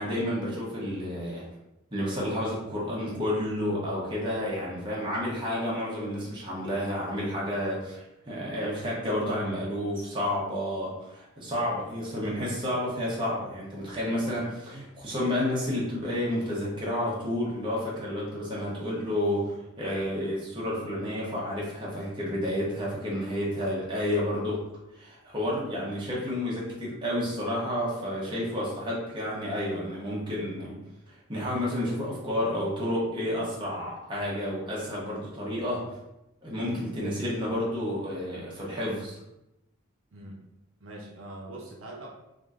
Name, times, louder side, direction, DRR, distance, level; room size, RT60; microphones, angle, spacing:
voice 1, 0.0-1.5 1.9-24.6 24.9-30.8 31.3-35.9 36.4-39.2, left 1 dB, 25° right, -5 dB, 0.8 m, -30 dB
voice 2, 36.7-37.0 40.1-40.4 40.8-42.1, right 1 dB, 70° right, -2 dB, 0.6 m, -43 dB
3.5 x 2.6 x 2.4 m, 0.90 s
head